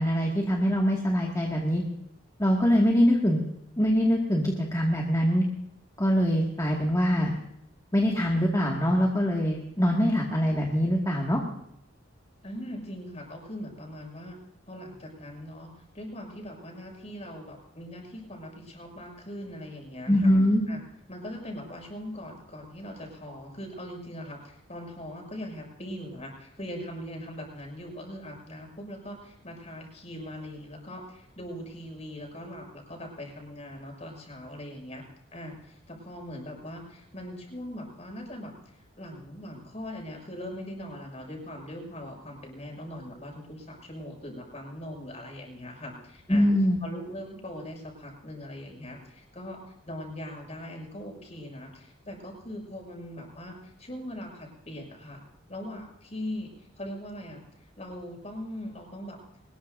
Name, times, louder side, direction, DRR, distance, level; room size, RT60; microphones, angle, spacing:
voice 1, 0.0-1.8 2.4-3.4 3.8-5.4 6.0-7.3 7.9-11.4 20.1-20.6 46.3-46.8, equal, 20° left, -2 dB, 2.2 m, -23 dB
voice 2, 12.4-14.4 14.7-20.3 20.7-20.8 21.1-24.4 24.7-35.0 35.3-46.5 46.8-49.6 49.9-55.2 55.5-57.4 57.8-59.2, left 1 dB, 35° left, 1 dB, 6.7 m, -40 dB
24.0 x 21.0 x 2.7 m, 0.78 s
head